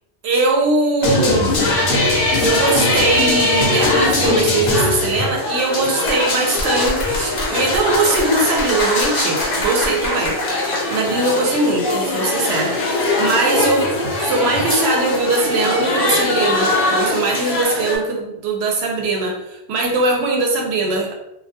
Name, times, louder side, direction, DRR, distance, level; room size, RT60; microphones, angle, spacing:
voice 1, 0.2-1.5 2.4-10.4 10.9-13.9 14.2-21.1, right 2 dB, 70° right, 1 dB, 0.8 m, -20 dB
sound 1, 1.0-18.0, left 2 dB, 60° left, 0.8 m, -20 dB
2.3 x 2.2 x 2.7 m, 0.87 s
omnidirectional pair, 1.2 m